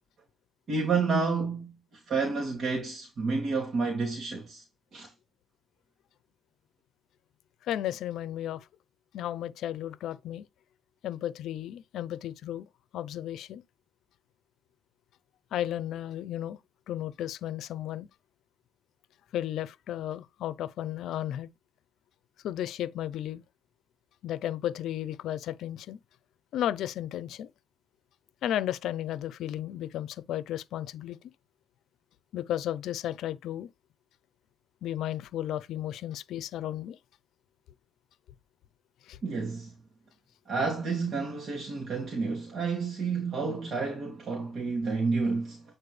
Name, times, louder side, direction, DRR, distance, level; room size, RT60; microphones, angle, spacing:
voice 1, 0.7-1.7 2.1-4.6 4.9-5.1 39.2-39.7 40.5-45.6, right 4 dB, 50° right, 2.7 m, -30 dB
voice 2, 7.6-8.7 9.1-10.5 11.0-12.7 12.9-13.6 15.5-16.6 16.9-18.1 19.3-21.5 22.4-23.4 24.2-26.0 26.5-27.5 28.4-31.2 32.3-33.7 34.8-37.0 39.0-39.2, left 12 dB, 80° left, 0.6 m, -34 dB
8.9 x 4.3 x 3.3 m
cardioid pair, 90°, 0 cm